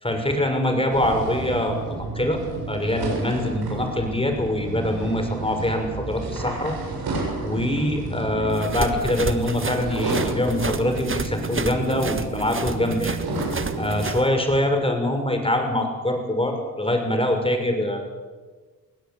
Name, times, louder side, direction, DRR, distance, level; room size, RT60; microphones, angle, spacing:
voice 1, 0.0-1.8 2.1-2.4 2.7-6.7 7.4-13.2 13.8-18.0, left 1 dB, 15° left, 5 dB, 6.2 m, -24 dB
sound 1, 0.9-14.0, right 3 dB, 75° right, 7.6 m, -31 dB
sound 2, 8.5-14.2, right 4 dB, 30° right, 1.7 m, -31 dB
20.5 x 16.5 x 8.7 m, 1.4 s
supercardioid pair, 55°, 38 cm